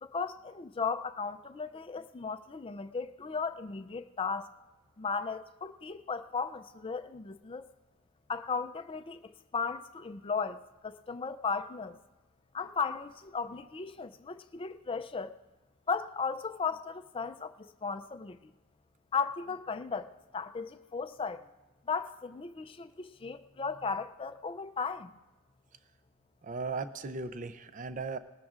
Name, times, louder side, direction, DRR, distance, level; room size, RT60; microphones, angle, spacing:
voice 1, 0.0-4.5 5.0-7.7 8.3-12.0 12.5-15.3 15.9-18.5 19.1-21.4 21.9-25.1, left 5 dB, 25° left, 10 dB, 0.4 m, -36 dB
voice 2, 26.4-28.2, right 4 dB, 35° right, 11 dB, 0.5 m, -37 dB
20.0 x 13.5 x 2.5 m, 1.2 s
head